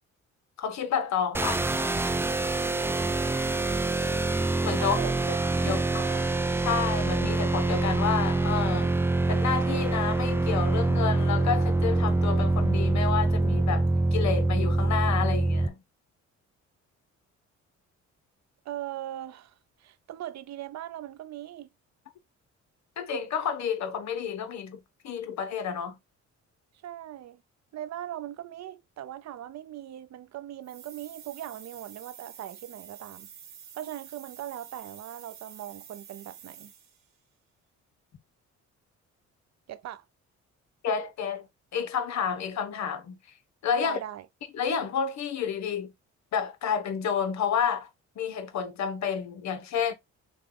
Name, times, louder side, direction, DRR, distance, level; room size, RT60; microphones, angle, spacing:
voice 1, 0.6-1.6 4.6-5.0 5.6-5.8 6.6-8.9 9.3-15.7 23.0-25.9 40.8-41.5 41.7-43.2 43.6-44.0 44.5-45.9 46.3-47.9 48.2-49.9, left 7 dB, 65° left, 0.9 m, -30 dB
sound 1, 1.3-15.7, right 2 dB, 10° right, 0.4 m, -25 dB
voice 2, 4.8-5.4 5.6-6.3 18.7-21.7 26.8-27.4 27.7-33.3 33.7-36.7 39.7-40.0 43.8-44.3, right 12 dB, 60° right, 0.6 m, -39 dB
sound 2, 30.6-37.1, right 8 dB, 85° right, 1.5 m, -48 dB
6.2 x 2.2 x 3.8 m
cardioid pair, 90°, 30 cm